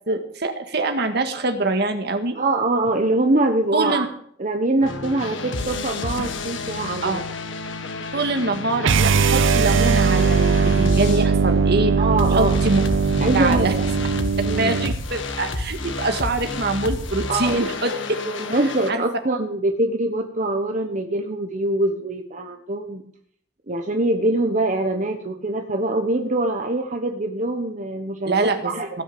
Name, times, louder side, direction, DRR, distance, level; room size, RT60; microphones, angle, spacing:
voice 1, 0.1-2.4 3.7-4.1 7.0-7.2 8.1-11.9 12.3-12.8 13.3-13.7 14.6-17.9 18.9-19.0 28.2-28.7, right 2 dB, 60° right, 7 dB, 1.8 m, -24 dB
voice 2, 2.3-4.1 4.4-7.2 12.0-12.6 13.2-13.8 14.4-14.8 17.3-17.6 18.2-23.0 23.7-28.9, right 2 dB, 40° right, 4 dB, 1.2 m, -23 dB
sound 1, 4.8-11.3 11.6-18.9, left 2 dB, 75° left, 1.7 m, -31 dB
sound 2, 8.8-15.0, right 5 dB, 75° right, 0.5 m, -19 dB
17.5 x 6.4 x 8.6 m, 0.64 s
head